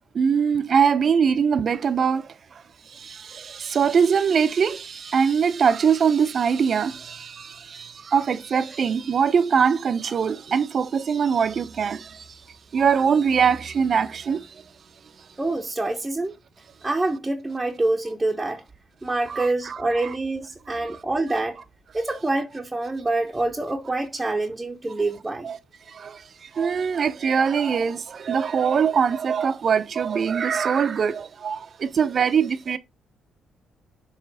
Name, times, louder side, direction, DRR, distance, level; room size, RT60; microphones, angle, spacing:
voice 1, 0.1-2.3 2.9-12.4 12.7-14.6 19.3-20.1 20.8-20.9 25.4-25.6 25.9-32.8, right 6 dB, 50° right, 0.7 m, -22 dB
voice 2, 15.4-16.3 16.8-18.6 19.0-21.6 21.9-25.5, right 2 dB, 15° right, 1.0 m, -26 dB
7.5 x 3.2 x 4.7 m
cardioid pair, 90°, 0 cm